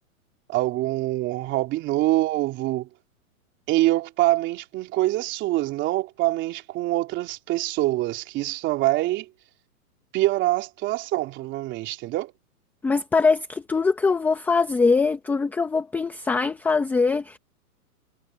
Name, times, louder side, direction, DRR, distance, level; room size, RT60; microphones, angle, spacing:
voice 1, 0.5-2.9 3.7-9.2 10.1-12.3, right 17 dB, 25° right, 3.3 m, -25 dB
voice 2, 12.8-17.4, left 4 dB, 5° left, 0.9 m, -22 dB
hypercardioid pair, 150°, 45 cm